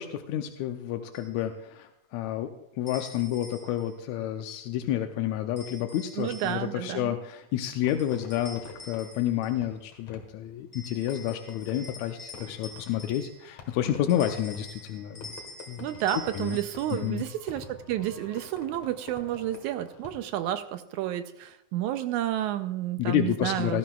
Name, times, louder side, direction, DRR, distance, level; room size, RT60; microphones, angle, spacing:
voice 1, 0.0-2.5 2.8-15.4 15.7-15.9 16.3-16.6 16.9-17.3 23.0-23.8, left 11 dB, 80° left, 5 dB, 1.7 m, -30 dB
sound 1, 1.1-1.4 2.9-3.9 5.6-6.8 7.9-9.7 10.7-13.6 14.1-17.2, left 2 dB, 15° left, 1.9 m, -46 dB
voice 2, 6.2-7.1 15.8-23.8, right 12 dB, 80° right, 10 dB, 1.8 m, -31 dB
Fireworks, 7.8-20.5, left 4 dB, 60° left, 2.5 m, -48 dB
17.5 x 12.5 x 2.3 m, 0.83 s
omnidirectional pair, 3.7 m